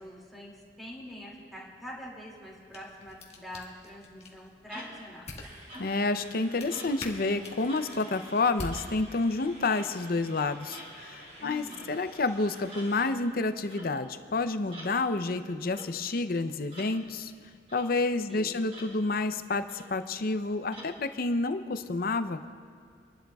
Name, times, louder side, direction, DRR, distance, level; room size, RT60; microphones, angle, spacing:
voice 1, 0.0-5.2 11.4-12.0 18.3-18.7, equal, ahead, -4 dB, 2.4 m, -45 dB
sound 1, 2.4-9.5, left 2 dB, 35° left, 1.5 m, -46 dB
sound 2, 4.7-5.1 5.7-6.1 6.7-7.0 7.7-7.9 8.7-9.0 9.7-9.9 10.7-10.9 11.7-11.9 12.7-12.9 13.7-13.9 14.7-14.9 15.7-15.9 16.7-16.9 17.7-17.9 18.7-18.9 19.7-20.0 20.7-20.9, equal, 35° right, 3.6 m, -46 dB
sound 3, 5.4-13.1, right 1 dB, 65° right, 3.0 m, -50 dB
voice 2, 5.8-17.3 17.7-22.5, left 3 dB, 55° left, 10 dB, 0.6 m, -29 dB
29.0 x 12.0 x 2.3 m, 2.3 s
head